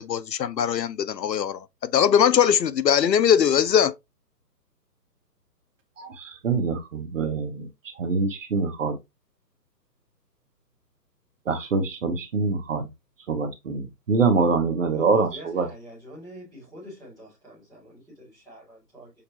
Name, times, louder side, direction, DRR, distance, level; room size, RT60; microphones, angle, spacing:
voice 1, 0.0-3.9, left 8 dB, 80° left, 0.6 m, -21 dB
voice 2, 6.0-7.7 8.0-8.9 11.5-12.9 13.3-15.7, right 4 dB, 50° right, 1.0 m, -25 dB
voice 3, 14.9-19.1, equal, ahead, 0.6 m, -45 dB
6.6 x 2.2 x 2.7 m
figure-of-eight pair, 135°, 49 cm